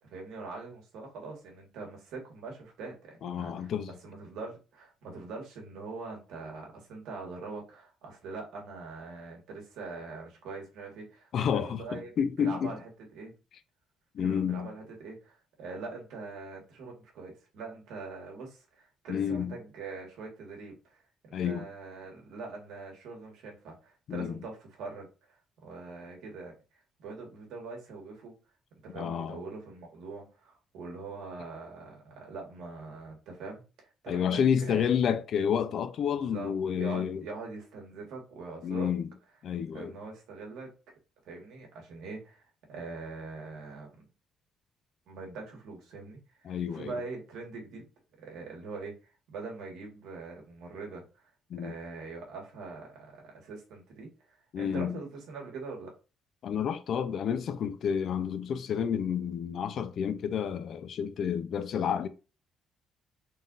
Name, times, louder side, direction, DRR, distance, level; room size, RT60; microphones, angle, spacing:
voice 1, 0.0-3.7 4.0-12.1 12.4-13.3 14.2-26.5 27.0-28.3 28.8-35.2 36.3-38.9 39.7-40.7 41.2-44.0 45.1-47.9 48.2-51.3 51.6-55.9, right 3 dB, 90° right, 1.5 m, -43 dB
voice 2, 3.2-3.9 11.3-12.7 14.1-14.7 19.1-19.6 21.3-21.7 24.1-24.4 28.9-29.4 34.1-37.2 38.6-39.1 39.4-39.9 46.4-46.9 51.5-51.7 54.5-55.0 56.4-62.1, left 8 dB, 45° left, 0.4 m, -30 dB
3.8 x 2.5 x 3.9 m
cardioid pair, 175°, 0 cm